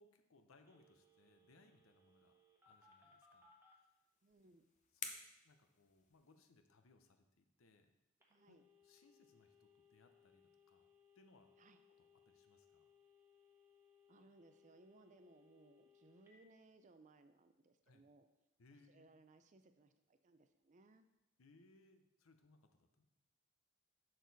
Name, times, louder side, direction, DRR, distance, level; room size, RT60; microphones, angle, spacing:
voice 1, 0.0-2.3 2.6-3.5 4.9-5.1 5.4-7.9 8.5-8.6 8.8-11.6 12.0-12.9 17.9-18.0 18.6-19.1 21.4-23.1, left 3 dB, 70° left, 7 dB, 0.7 m, -69 dB
Telephone, 0.7-3.8 8.2-16.4, left 5 dB, 10° right, 1.1 m, -70 dB
sound 1, 3.9-6.6, left 6 dB, 35° left, 0.7 m, -53 dB
voice 2, 4.2-4.7 8.3-8.6 11.6-11.8 14.1-18.3 18.9-21.1, right 2 dB, 35° right, 9 dB, 0.5 m, -66 dB
6.6 x 6.2 x 4.0 m, 0.93 s
head